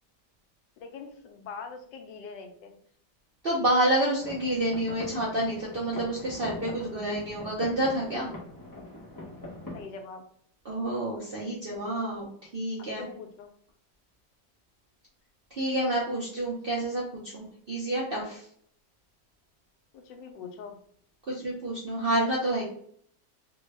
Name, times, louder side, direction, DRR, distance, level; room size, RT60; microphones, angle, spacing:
voice 1, 0.8-2.8 9.7-10.2 13.0-13.5 19.9-20.8, left 5 dB, 90° left, 5 dB, 1.3 m, -43 dB
voice 2, 3.4-8.3 10.7-12.3 12.5-13.0 15.5-18.4 21.3-22.6, right 1 dB, 65° right, -5 dB, 0.5 m, -28 dB
sound 1, 4.2-9.8, left 1 dB, 30° left, 0.3 m, -42 dB
3.3 x 2.1 x 3.2 m, 0.62 s
omnidirectional pair, 1.9 m